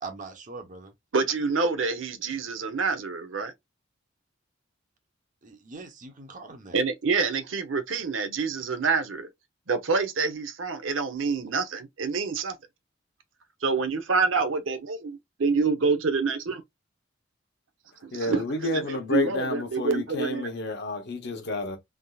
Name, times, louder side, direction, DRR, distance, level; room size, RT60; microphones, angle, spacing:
voice 1, 0.0-0.9 5.4-6.8, right 3 dB, 40° right, 0.9 m, -41 dB
voice 2, 1.1-3.5 6.7-9.3 9.7-12.5 13.6-16.6 18.0-18.4 19.1-20.5, right 4 dB, 75° right, 0.7 m, -27 dB
voice 3, 18.1-21.8, left 3 dB, 60° left, 0.9 m, -30 dB
3.5 x 2.6 x 2.4 m
head